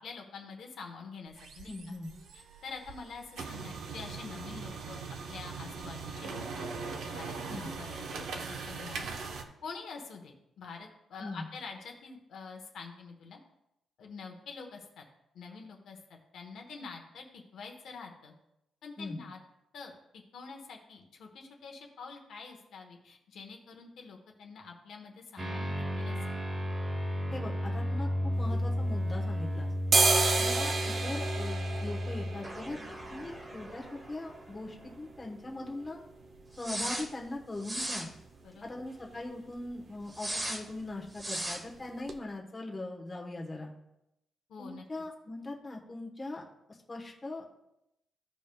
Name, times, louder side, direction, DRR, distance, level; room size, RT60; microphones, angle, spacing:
voice 1, 0.0-1.7 2.3-5.0 5.3-9.1 9.6-13.4 14.0-15.0 15.3-18.3 18.8-19.4 19.7-26.4 38.4-38.7 44.5-44.8, left 5 dB, 65° left, 2 dB, 1.1 m, -46 dB
Laser printer, 1.3-9.4, right 4 dB, 80° right, 0.9 m, -41 dB
voice 2, 1.6-2.1 7.5-7.7 11.2-11.5 19.0-19.2 27.3-29.7 30.4-36.0 36.6-38.1 38.6-43.7 44.6-46.4 46.9-47.4, left 2 dB, 20° left, -1 dB, 1.1 m, -40 dB
sound 1, 25.4-34.5 34.8-34.9 36.6-37.1 37.6-38.1 40.1-40.6 41.2-41.6, equal, 20° right, 1.1 m, -34 dB
sound 2, 28.3-29.4 29.7-37.5 37.8-37.9 38.1-38.7 39.0-39.2 39.5-39.7 40.0-40.7 41.1-41.2 41.7-41.8 42.1-42.2, right 3 dB, 35° right, 0.7 m, -32 dB
15.5 x 5.2 x 2.3 m, 0.85 s
wide cardioid pair, 165°, 0 cm